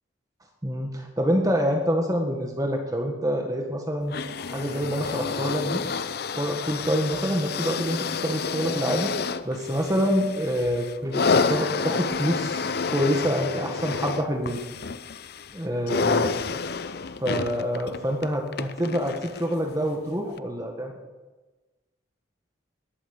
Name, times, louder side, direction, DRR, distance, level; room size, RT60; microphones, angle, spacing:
voice 1, 0.6-5.8 6.4-8.0 8.2-9.1 9.4-14.6 15.5-16.3 17.2-20.9, equal, 20° right, 2 dB, 1.6 m, -26 dB
sound 1, 4.1-19.5 20.4-20.5, left 4 dB, 50° left, 0.6 m, -29 dB
20.0 x 8.5 x 7.1 m, 1.2 s
head